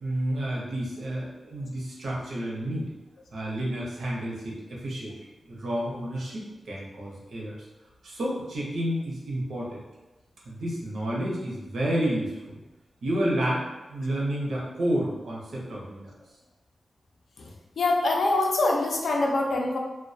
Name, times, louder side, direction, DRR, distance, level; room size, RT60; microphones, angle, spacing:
voice 1, 0.0-2.9 3.3-5.1 5.4-7.6 8.0-9.8 10.5-12.6 13.0-13.6 13.9-16.1, right 1 dB, 75° right, -4 dB, 0.6 m, -30 dB
voice 2, 17.8-19.8, left 2 dB, 75° left, 0 dB, 0.4 m, -24 dB
2.2 x 2.1 x 2.6 m, 1.1 s
wide cardioid pair, 170°, 0 cm